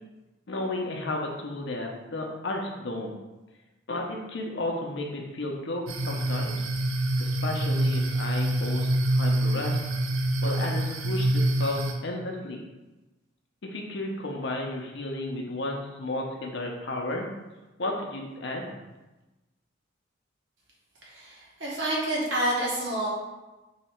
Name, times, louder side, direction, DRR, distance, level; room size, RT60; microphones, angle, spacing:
voice 1, 0.5-3.1 3.9-6.6 7.2-9.8 10.4-12.6 13.6-17.3 17.8-18.8, left 2 dB, 60° left, 1 dB, 0.6 m, -33 dB
sound 1, 5.9-11.9, right 1 dB, 85° right, 0.5 m, -26 dB
voice 2, 21.0-23.1, right 1 dB, 60° right, -5 dB, 1.2 m, -28 dB
3.1 x 2.8 x 4.3 m, 1.1 s
head